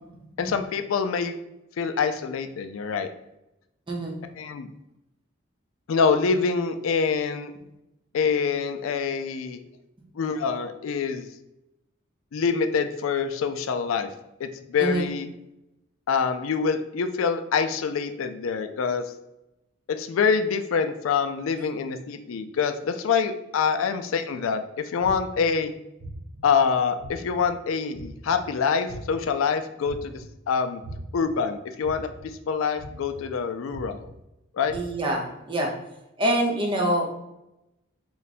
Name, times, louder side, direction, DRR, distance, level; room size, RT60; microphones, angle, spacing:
voice 1, 0.4-1.4 1.8-3.1 4.4-4.7 5.9-7.5 8.1-9.6 10.2-11.3 12.3-14.1 14.4-15.3 16.1-19.0 19.9-25.7 26.4-30.8 31.1-32.1 32.5-34.1 34.6-34.7, left 5 dB, 80° left, 8 dB, 0.4 m, -25 dB
sound 1, 25.0-25.4 26.0-26.4 27.0-27.4 27.9-28.4 28.9-29.3 29.8-30.3 30.8-31.2 31.8-32.2 32.8-33.2 33.7-34.1 34.7-34.8, right 2 dB, 85° right, 0.9 m, -41 dB
voice 2, 34.7-35.7 36.2-37.1, right 1 dB, 25° right, 0 dB, 0.7 m, -25 dB
4.6 x 2.2 x 4.0 m, 0.91 s
head